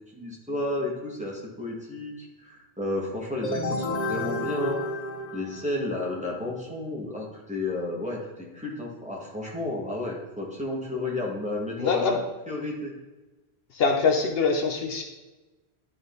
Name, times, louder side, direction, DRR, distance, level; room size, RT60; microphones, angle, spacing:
voice 1, 0.1-4.8 5.3-12.2 12.5-12.9, left 2 dB, 5° right, -4 dB, 1.6 m, -32 dB
sound 1, 3.4-6.1, left 2 dB, 45° left, 0.8 m, -31 dB
voice 2, 11.8-12.2 13.7-15.0, left 4 dB, 70° left, 4 dB, 1.0 m, -23 dB
11.0 x 3.9 x 3.8 m, 1.1 s
omnidirectional pair, 1.1 m